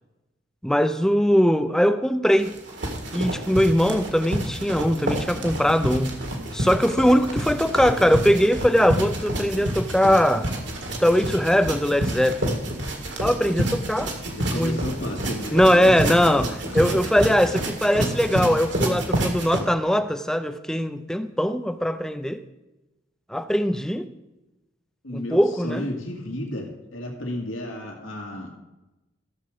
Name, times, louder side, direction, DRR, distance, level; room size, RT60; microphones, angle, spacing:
voice 1, 0.6-2.5 3.1-6.2 6.5-10.5 11.0-12.6 13.2-14.1 14.5-14.8 15.5-16.4 16.7-22.4 23.3-24.1 25.1-25.8, equal, 5° left, 10 dB, 0.5 m, -21 dB
sound 1, 2.4-19.6, right 1 dB, 65° right, 1.9 m, -29 dB
voice 2, 14.0-16.2 16.4-17.0 25.0-28.6, left 1 dB, 90° left, 1 dB, 2.1 m, -33 dB
14.5 x 7.4 x 5.0 m, 1.0 s
head